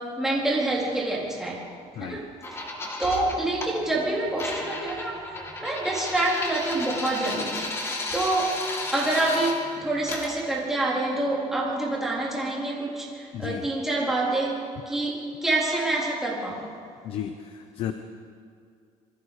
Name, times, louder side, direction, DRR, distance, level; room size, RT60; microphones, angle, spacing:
voice 1, 0.0-1.7 2.0-2.2 2.6-2.7 3.0-7.6 8.1-8.6 8.9-16.7, right 2 dB, 5° right, -5 dB, 4.0 m, -27 dB
sound 1, 2.4-3.7 4.4-9.6 10.1-10.3, left 2 dB, 20° left, 2.4 m, -33 dB
voice 2, 13.3-13.7 17.0-17.9, left 9 dB, 50° left, 8 dB, 1.0 m, -33 dB
27.5 x 22.5 x 5.1 m, 2.3 s
cardioid pair, 170°, 12 cm